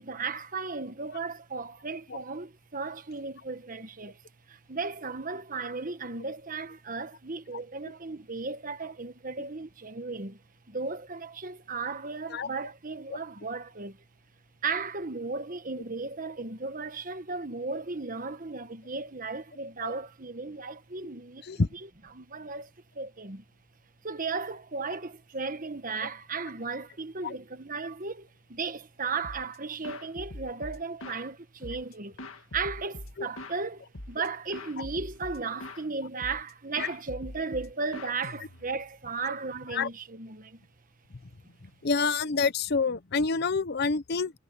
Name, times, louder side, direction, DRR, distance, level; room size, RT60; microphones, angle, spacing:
voice 1, 0.0-4.2 4.5-10.4 10.7-14.0 14.6-23.4 24.0-32.2 32.5-40.6, right 4 dB, 40° right, 1.3 m, -35 dB
sound 1, 29.2-29.6 29.8-31.3 31.6-33.6 33.9-34.3 34.5-35.8 36.2-36.5 36.8-38.8, left 1 dB, 70° left, 2.0 m, -43 dB
voice 2, 41.8-44.3, left 4 dB, 50° left, 0.7 m, -27 dB
head